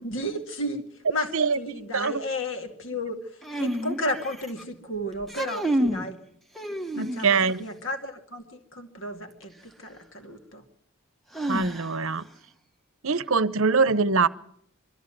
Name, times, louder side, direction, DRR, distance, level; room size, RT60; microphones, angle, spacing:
voice 1, 0.0-6.2 7.0-10.6, left 1 dB, 55° left, 5 dB, 2.2 m, -33 dB
sound 1, 3.4-4.6 5.2-6.1 6.6-7.5 9.4-9.5 11.3-12.2, right 1 dB, ahead, 1.0 m, -29 dB
voice 2, 7.0-7.6 11.5-12.2 13.0-14.3, right 4 dB, 65° right, 16 dB, 0.8 m, -23 dB
23.5 x 13.5 x 9.1 m, 0.70 s
head